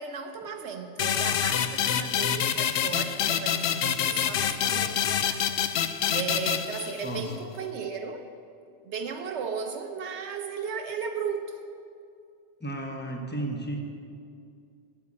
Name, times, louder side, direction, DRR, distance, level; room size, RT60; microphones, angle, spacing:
voice 1, 0.0-5.4 6.1-8.2 8.8-11.6, right 6 dB, 80° right, 1.0 m, -35 dB
sound 1, 1.0-7.4, left 9 dB, 65° left, 0.7 m, -27 dB
voice 2, 12.6-13.8, right 1 dB, 10° left, 1.2 m, -33 dB
8.9 x 8.3 x 8.7 m
omnidirectional pair, 1.2 m